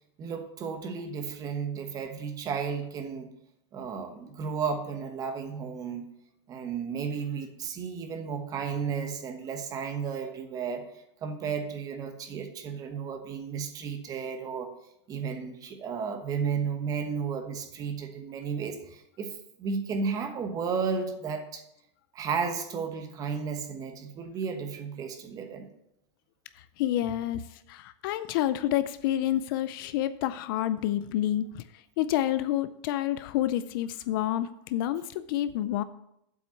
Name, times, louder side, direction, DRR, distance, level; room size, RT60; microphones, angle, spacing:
voice 1, 0.2-3.3 3.7-6.1 6.5-10.9 11.2-14.7 15.1-21.6 22.1-25.7 27.0-27.2, right 6 dB, 25° right, 7 dB, 1.1 m, -33 dB
voice 2, 26.5-35.8, left 12 dB, 50° left, 13 dB, 0.5 m, -29 dB
7.9 x 5.9 x 7.0 m, 0.79 s
supercardioid pair, 155°, 15 cm